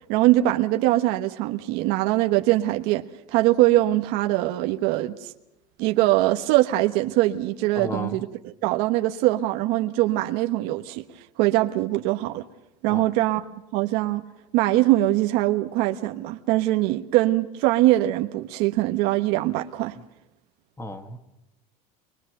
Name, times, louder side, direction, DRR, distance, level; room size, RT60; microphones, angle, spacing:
voice 1, 0.1-3.0 3.3-5.3 5.8-11.0 11.4-12.4 12.8-13.4 13.7-14.2 14.5-20.0, right 16 dB, 65° right, 1.2 m, -22 dB
voice 2, 7.8-8.2 12.9-13.1 20.8-21.2, left 2 dB, 15° left, 2.0 m, -33 dB
24.0 x 23.0 x 6.7 m
supercardioid pair, 140°, 18 cm